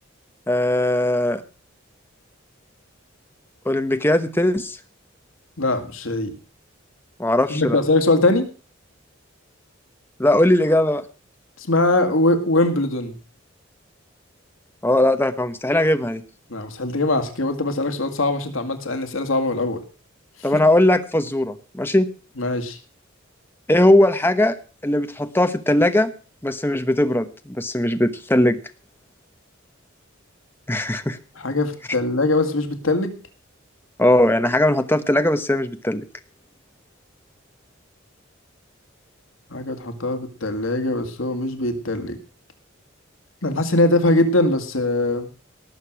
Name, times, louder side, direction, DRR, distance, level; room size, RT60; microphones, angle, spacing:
voice 1, 0.5-1.4 3.6-4.8 7.2-7.8 10.2-11.0 14.8-16.2 20.4-22.1 23.7-24.6 24.8-26.1 26.4-28.6 30.7-31.2 34.0-36.0, left 1 dB, 10° left, 9 dB, 1.0 m, -19 dB
voice 2, 5.6-6.3 7.5-8.5 11.6-13.1 16.5-19.8 22.4-22.8 31.4-33.2 39.5-42.2 43.4-45.3, left 2 dB, 80° left, 7 dB, 2.0 m, -21 dB
18.5 x 6.7 x 6.2 m, 0.36 s
head